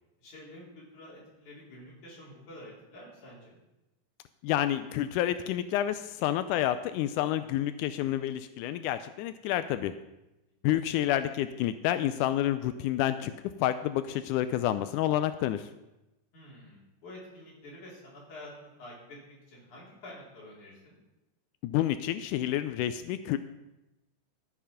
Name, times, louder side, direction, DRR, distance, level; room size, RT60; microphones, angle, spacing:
voice 1, 0.2-3.6 16.3-21.0, left 1 dB, 55° left, -5 dB, 5.3 m, -49 dB
voice 2, 4.4-9.9 10.6-13.3 13.6-15.7 21.6-23.4, left 12 dB, 90° left, 11 dB, 1.8 m, -29 dB
13.5 x 7.1 x 5.7 m, 0.97 s
omnidirectional pair, 4.1 m